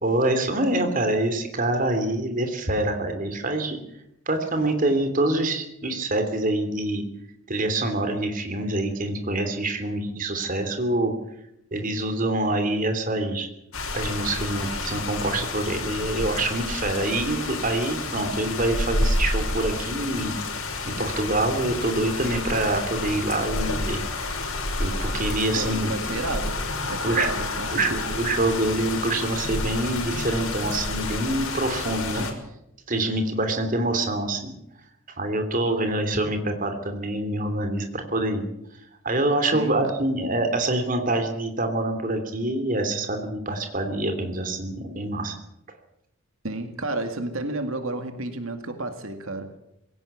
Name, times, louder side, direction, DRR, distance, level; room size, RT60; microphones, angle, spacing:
voice 1, 0.0-3.8 4.3-7.0 7.5-11.1 11.7-13.5 13.9-20.3 20.9-24.0 24.3-24.4 24.8-26.2 27.0-27.3 27.7-32.3 32.9-34.5 35.2-38.5 39.0-45.3, right 2 dB, 40° right, 3.0 m, -26 dB
sound 1, 13.7-32.3, left 2 dB, 85° left, 5.7 m, -29 dB
voice 2, 25.6-28.2 39.5-39.8 46.4-49.5, right 2 dB, 75° right, 2.2 m, -31 dB
21.0 x 17.5 x 8.5 m
head